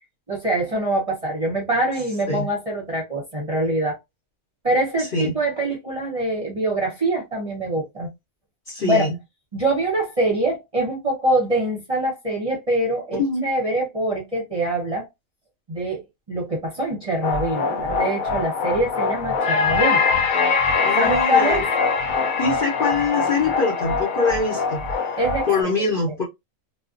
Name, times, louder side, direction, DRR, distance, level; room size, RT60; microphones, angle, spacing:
voice 1, 0.3-4.0 4.6-8.1 8.8-9.1 9.5-15.1 15.7-16.0 16.3-20.0 21.0-21.7 25.2-25.9, right 1 dB, 30° right, 0.7 m, -24 dB
voice 2, 5.0-5.3 8.7-9.1 13.2-13.5 20.8-21.7 22.4-25.2 25.5-26.2, left 3 dB, 45° left, 1.0 m, -24 dB
sound 1, 17.2-25.6, left 5 dB, 90° left, 1.0 m, -23 dB
2.4 x 2.3 x 2.4 m
omnidirectional pair, 1.4 m